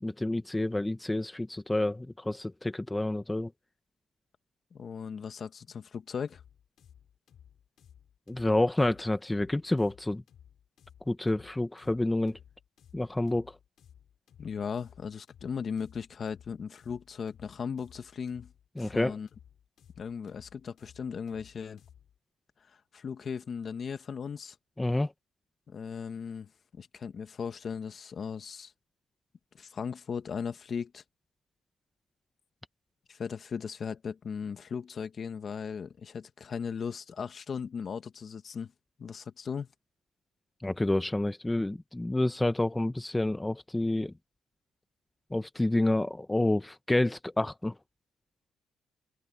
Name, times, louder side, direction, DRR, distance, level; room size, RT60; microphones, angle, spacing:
voice 1, 0.0-3.5 8.3-10.2 11.1-12.4 12.9-13.5 18.8-19.1 24.8-25.1 40.6-44.1 45.3-47.7, left 1 dB, 10° left, 1.1 m, -29 dB
voice 2, 4.7-6.4 14.4-18.5 18.8-19.3 20.0-21.8 22.6-24.6 25.7-26.5 26.8-28.7 29.5-31.0 33.1-38.7 39.0-39.7, left 6 dB, 50° left, 1.8 m, -37 dB
sound 1, 6.3-22.2, left 9 dB, 65° left, 6.9 m, -58 dB
cardioid pair, 90°, 0 cm